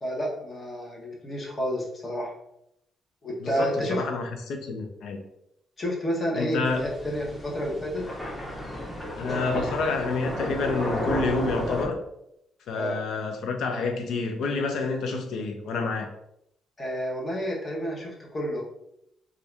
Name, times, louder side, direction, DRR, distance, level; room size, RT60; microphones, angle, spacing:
voice 1, 0.0-2.3 3.2-4.0 5.8-8.1 12.7-13.0 16.8-18.6, equal, 35° left, -3 dB, 1.0 m, -30 dB
voice 2, 3.4-5.2 6.4-6.9 9.2-12.0 12.7-16.1, left 4 dB, 75° left, 5 dB, 0.5 m, -28 dB
sound 1, 6.6-11.9, left 1 dB, 10° left, 0.9 m, -32 dB
2.6 x 2.5 x 3.3 m, 0.78 s
cardioid pair, 90°, 0 cm